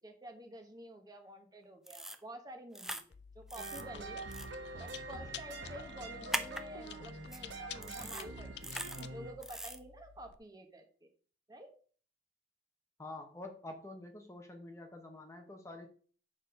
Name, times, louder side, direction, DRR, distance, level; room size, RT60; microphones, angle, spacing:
voice 1, 0.0-3.0 3.3-4.2 4.7-11.1 11.5-11.7, right 1 dB, 20° right, 5 dB, 1.2 m, -50 dB
sound 1, 1.9-2.2 2.7-3.0 3.5-3.8 4.3-4.5 6.3-6.6 7.3-7.4 7.8-8.2 8.6-9.0 9.4-9.8, right 1 dB, ahead, 0.4 m, -40 dB
Chewing mastication, 3.1-10.4, left 8 dB, 65° left, 0.5 m, -51 dB
sound 2, 3.6-9.3, right 3 dB, 80° right, 1.2 m, -45 dB
voice 2, 13.0-15.9, left 2 dB, 15° left, 4 dB, 0.8 m, -47 dB
6.6 x 4.8 x 5.1 m, 0.43 s
head